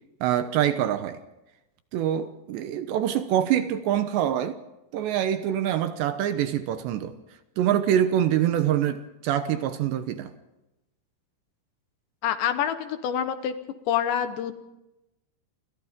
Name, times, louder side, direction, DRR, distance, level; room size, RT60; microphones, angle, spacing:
voice 1, 0.2-1.2 1.9-4.6 4.9-7.2 7.6-10.3, right 10 dB, 75° right, 2.8 m, -25 dB
voice 2, 12.2-13.5 13.9-14.6, left 9 dB, 75° left, 3.1 m, -26 dB
29.0 x 24.5 x 3.7 m
omnidirectional pair, 5.6 m